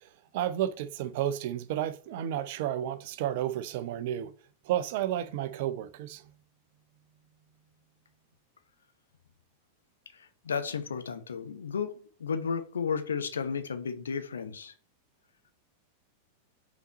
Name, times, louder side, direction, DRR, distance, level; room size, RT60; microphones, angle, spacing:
voice 1, 0.0-4.3 4.6-6.2, right 11 dB, 50° right, 0.5 m, -32 dB
voice 2, 10.1-14.7, left 6 dB, 70° left, 0.8 m, -33 dB
5.7 x 4.1 x 4.1 m
figure-of-eight pair, 90°, 0 cm